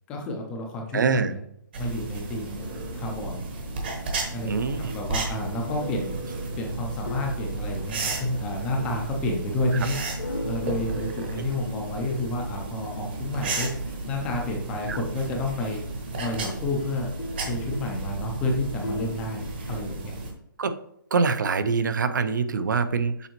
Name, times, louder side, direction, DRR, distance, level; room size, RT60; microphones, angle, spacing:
voice 1, 0.1-1.4 1.8-3.4 4.3-4.5 4.8-6.1 6.6-10.0 10.4-13.7 14.1-15.8 16.2-17.1 17.4-20.1, left 2 dB, 5° left, 1 dB, 0.4 m, -30 dB
voice 2, 0.9-1.3 4.5-4.9 11.4-11.5 14.9-15.0 20.6-20.7 21.1-23.3, right 5 dB, 60° right, 11 dB, 0.6 m, -24 dB
sound 1, 1.7-20.3, right 3 dB, 30° right, 0.9 m, -33 dB
sound 2, 4.5-14.5 14.8-19.9, left 2 dB, 80° left, 1.9 m, -41 dB
6.9 x 5.0 x 3.0 m, 0.73 s
hypercardioid pair, 175°, 11 cm